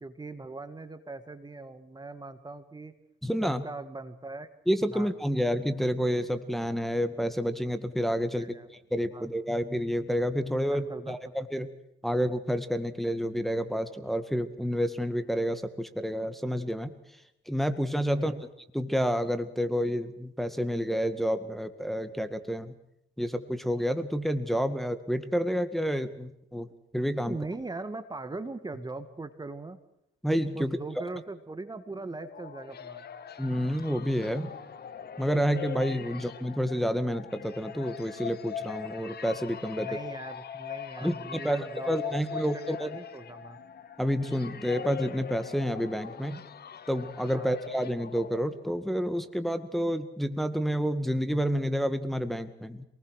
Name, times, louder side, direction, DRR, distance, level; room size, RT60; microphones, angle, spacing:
voice 1, 0.0-2.9 3.4-4.5 4.9-5.1 8.3-8.7 9.1-9.3 10.4-11.2 18.1-18.4 27.2-29.8 30.6-33.1 36.1-36.2 39.8-43.6 47.3-47.5, right 3 dB, 20° right, 11 dB, 1.9 m, -40 dB
voice 2, 3.2-3.6 4.7-8.5 8.9-11.7 12.0-16.9 17.5-18.3 18.7-22.7 23.2-26.7 26.9-27.4 30.2-30.8 33.4-34.5 35.2-39.9 41.0-43.0 44.0-46.4 46.9-52.8, equal, ahead, 9 dB, 1.9 m, -29 dB
sound 1, 31.9-48.9, left 8 dB, 55° left, 1.9 m, -41 dB
27.5 x 19.5 x 6.5 m, 0.79 s
cardioid pair, 90°, 20 cm